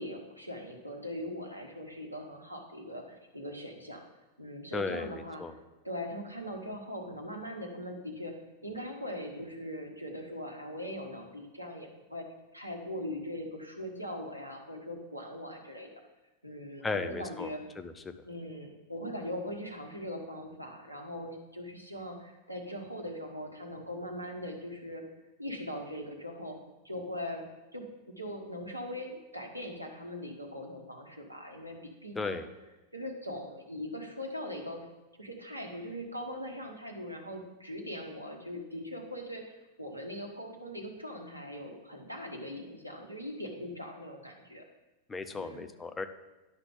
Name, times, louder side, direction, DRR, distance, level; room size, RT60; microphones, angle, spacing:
voice 1, 0.0-4.0 4.4-5.4 5.8-8.4 8.6-12.2 12.5-15.9 16.4-17.6 18.2-25.0 25.4-26.6 26.8-27.4 27.7-32.4 32.9-34.9 35.2-39.4 39.8-44.6 45.3-45.7, equal, 90° right, 2 dB, 1.3 m, -40 dB
voice 2, 4.7-5.5 16.8-17.9 32.2-32.5 45.1-46.1, left 4 dB, 15° left, 9 dB, 0.6 m, -35 dB
11.0 x 5.7 x 3.8 m, 1.1 s
figure-of-eight pair, 90°, 0 cm